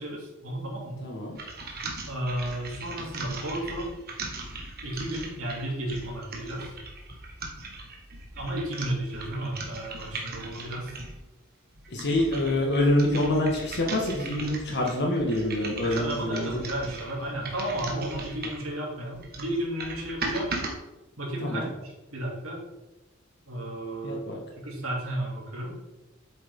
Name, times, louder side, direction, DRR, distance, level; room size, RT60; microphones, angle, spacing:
voice 1, 0.0-1.0 2.1-3.9 4.8-6.7 8.3-11.0 15.8-20.5 21.2-22.6 23.5-24.3 24.6-25.7, right 1 dB, 80° right, -3 dB, 2.8 m, -33 dB
voice 2, 1.0-1.4 11.9-16.6 21.4-21.7 24.0-24.4, left 1 dB, 55° left, -1 dB, 1.6 m, -26 dB
sound 1, 1.3-11.2 11.7-18.7 19.1-20.7, right 3 dB, 45° right, 1.5 m, -39 dB
8.4 x 7.0 x 3.7 m, 1.1 s
head